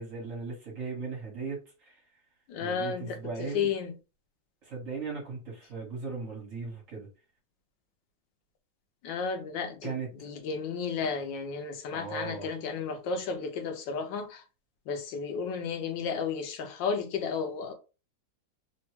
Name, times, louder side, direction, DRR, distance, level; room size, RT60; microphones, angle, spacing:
voice 1, 0.0-2.0 2.6-3.7 4.6-7.1 9.8-10.1 11.0-11.1 11.9-12.5, right 4 dB, 50° right, 1.5 m, -38 dB
voice 2, 2.5-3.9 9.0-14.4 14.9-17.7, left 5 dB, 85° left, 1.3 m, -33 dB
3.5 x 2.2 x 3.0 m
omnidirectional pair, 2.0 m